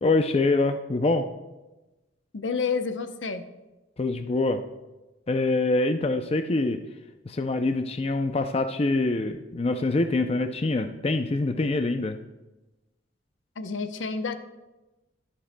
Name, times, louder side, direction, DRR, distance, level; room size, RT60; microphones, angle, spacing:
voice 1, 0.0-1.3 4.0-4.6 5.3-6.8 7.3-12.2, left 2 dB, 30° left, 7 dB, 0.4 m, -25 dB
voice 2, 2.3-3.4 13.6-14.4, left 5 dB, 80° left, 8 dB, 0.7 m, -29 dB
22.0 x 7.5 x 2.2 m, 1.1 s
head